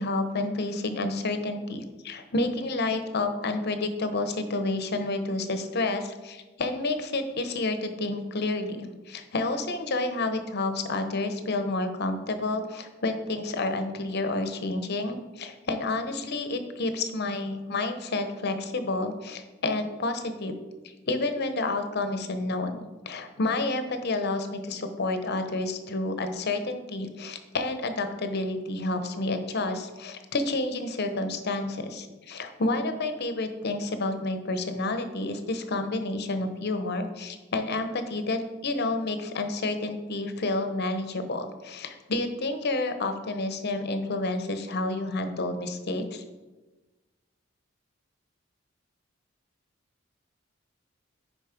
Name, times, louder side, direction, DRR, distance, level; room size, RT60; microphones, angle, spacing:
voice 1, 0.0-20.5 20.8-46.2, left 2 dB, 55° left, 8 dB, 0.9 m, -30 dB
9.1 x 5.3 x 5.1 m, 1.2 s
head